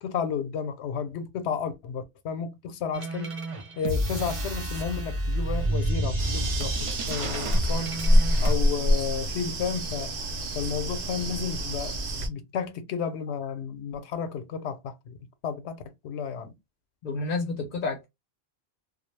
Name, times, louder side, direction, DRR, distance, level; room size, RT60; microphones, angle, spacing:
voice 1, 0.0-3.3 3.8-7.9 8.4-10.1 10.5-12.0 12.3-15.2 15.4-16.5, left 7 dB, 85° left, 0.9 m, -32 dB
sound 1, 2.9-8.5, right 1 dB, 45° right, 0.4 m, -30 dB
sound 2, 6.2-12.3, equal, 70° right, 0.8 m, -26 dB
voice 2, 17.0-18.1, left 3 dB, 60° left, 0.6 m, -30 dB
2.2 x 2.0 x 3.1 m
omnidirectional pair, 1.1 m